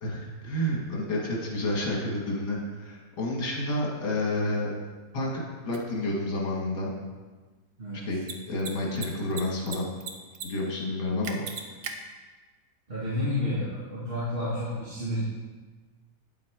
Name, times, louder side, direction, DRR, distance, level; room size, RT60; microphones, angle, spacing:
voice 1, 0.0-4.7 5.1-6.9 8.1-8.2 8.5-9.9 10.4-11.4, left 1 dB, 80° left, -3 dB, 2.3 m, -30 dB
Mechanisms, 5.7-5.8 8.1-8.3 8.6-8.7 9.0-9.8 10.0-10.5 10.7-10.8 11.2-11.9, right 7 dB, 80° right, 1.5 m, -36 dB
voice 2, 7.8-8.1 12.9-15.2, left 1 dB, 35° right, -8 dB, 1.9 m, -30 dB
9.3 x 7.2 x 4.7 m, 1.3 s
omnidirectional pair, 1.8 m